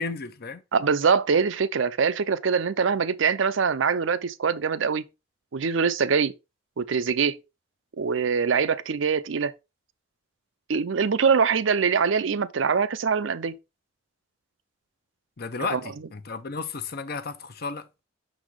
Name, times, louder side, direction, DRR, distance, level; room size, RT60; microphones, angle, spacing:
voice 1, 0.0-0.6 15.4-17.9, left 4 dB, 50° left, 0.7 m, -33 dB
voice 2, 0.7-5.0 5.5-6.3 6.8-7.4 8.0-9.5 10.7-13.5 15.7-15.8, right 5 dB, 70° right, 0.5 m, -23 dB
6.1 x 4.1 x 4.6 m
head